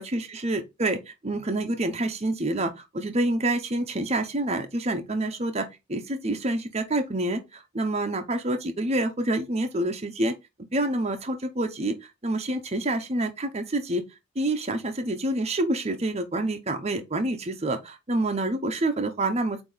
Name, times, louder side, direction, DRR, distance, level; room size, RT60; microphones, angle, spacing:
voice 1, 0.0-10.3 10.7-12.0 12.2-14.0 14.4-19.6, right 1 dB, 35° right, 0.9 m, -27 dB
8.3 x 2.9 x 4.0 m
head